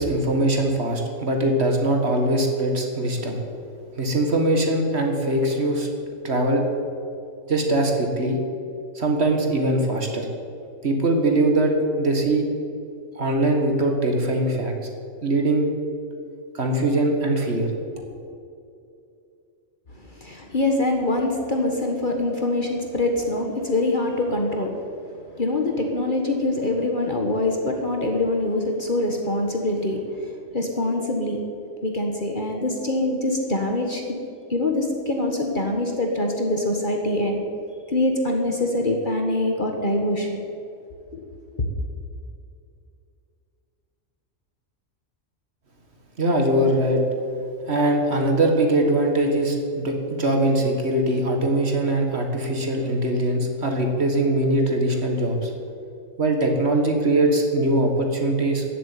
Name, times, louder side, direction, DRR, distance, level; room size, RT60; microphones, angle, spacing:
voice 1, 0.0-3.4 4.0-5.9 6.2-6.6 7.5-8.4 9.0-10.3 10.8-12.5 13.2-14.7 15.2-15.7 16.5-17.7 46.2-47.0 47.7-55.5 56.2-58.6, right 1 dB, 50° right, 3 dB, 2.1 m, -21 dB
voice 2, 20.1-24.7 25.4-31.4 31.8-34.0 34.5-37.4 37.9-40.4 41.1-41.2, left 2 dB, 40° left, 2 dB, 1.5 m, -24 dB
14.5 x 7.7 x 9.4 m, 2.6 s
omnidirectional pair, 1.4 m